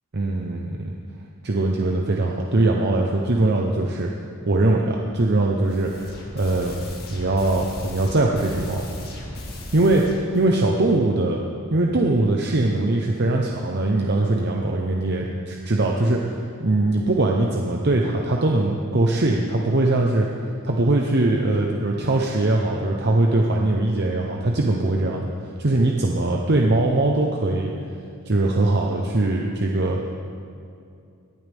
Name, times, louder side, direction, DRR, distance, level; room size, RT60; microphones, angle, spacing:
voice 1, 0.1-0.9 1.4-4.1 4.5-6.7 7.1-8.9 9.7-11.4 11.7-20.3 20.6-25.3 25.6-27.7 28.3-30.0, right 2 dB, 50° right, 0 dB, 0.9 m, -21 dB
sound 1, 5.6-10.5, left 1 dB, 50° left, 2.2 m, -37 dB
18.5 x 11.5 x 3.6 m, 2.4 s
head